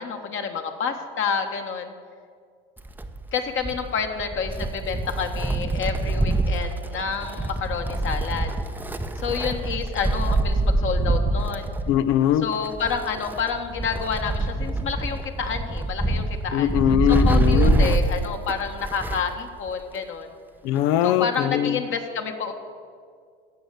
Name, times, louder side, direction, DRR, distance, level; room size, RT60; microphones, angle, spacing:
voice 1, 0.0-1.9 3.3-8.5 9.2-11.7 12.4-16.7 17.1-20.3 21.0-22.5, left 6 dB, 45° left, 5 dB, 1.5 m, -29 dB
Wind, 2.8-19.4 19.7-19.8 20.8-20.9, right 2 dB, 5° right, 0.7 m, -25 dB
voice 2, 11.9-12.5 16.5-18.0 20.6-21.8, left 11 dB, 65° left, 15 dB, 0.7 m, -21 dB
16.5 x 6.4 x 6.8 m, 2.1 s
hypercardioid pair, 85°, 29 cm